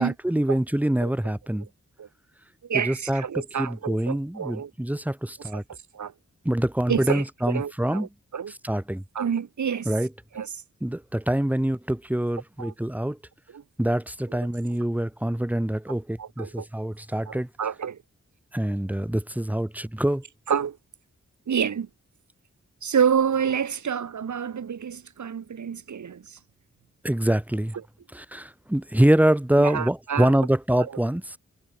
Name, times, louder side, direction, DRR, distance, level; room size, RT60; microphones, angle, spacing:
voice 1, 0.0-1.7 2.8-5.6 6.4-8.1 8.6-9.0 9.8-10.1 10.8-13.2 13.8-17.5 18.5-20.2 27.0-27.7 28.1-31.4, right 1 dB, 5° right, 1.5 m, -25 dB
voice 2, 1.0-1.3 2.0-2.1 2.7-4.7 5.5-6.1 6.9-8.5 9.2-9.9 10.3-10.5 12.6-12.7 13.5-13.6 16.2-16.7 17.3-18.0 20.5-20.8 21.5-21.9 22.8-26.4 29.6-30.4 30.8-30.9, right 7 dB, 75° right, 1.8 m, -28 dB
wide cardioid pair, 110°, 29 cm